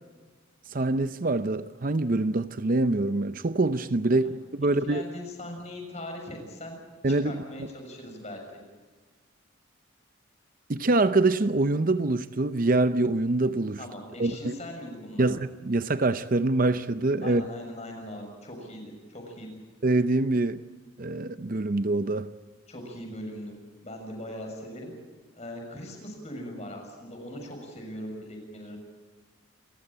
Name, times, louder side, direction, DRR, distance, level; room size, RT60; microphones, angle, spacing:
voice 1, 0.7-5.0 7.0-7.4 10.7-13.8 14.2-14.5 15.2-17.4 19.8-20.6 21.0-22.3, right 2 dB, 45° right, 0.7 m, -25 dB
voice 2, 4.8-6.8 7.1-8.4 13.8-15.3 17.2-19.5 22.7-23.6 23.8-24.9 25.3-28.8, left 1 dB, 35° left, 6.5 m, -40 dB
28.5 x 15.0 x 8.9 m
head